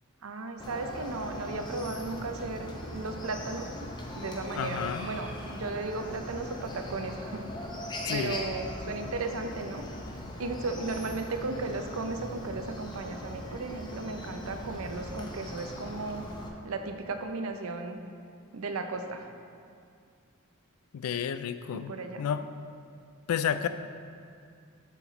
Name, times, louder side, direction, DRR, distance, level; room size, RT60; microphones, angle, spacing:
voice 1, 0.2-3.9 4.2-7.5 8.1-9.8 10.4-16.3 16.6-18.0 18.5-19.3 21.9-22.3, right 3 dB, 70° right, 6 dB, 0.6 m, -35 dB
Chicken rooster, 0.6-16.5, left 1 dB, 20° left, 0.6 m, -40 dB
voice 2, 4.5-5.1 8.1-8.4 20.9-22.4 23.3-23.7, left 8 dB, 80° left, 11 dB, 0.3 m, -31 dB
7.3 x 5.9 x 3.9 m, 2.3 s
head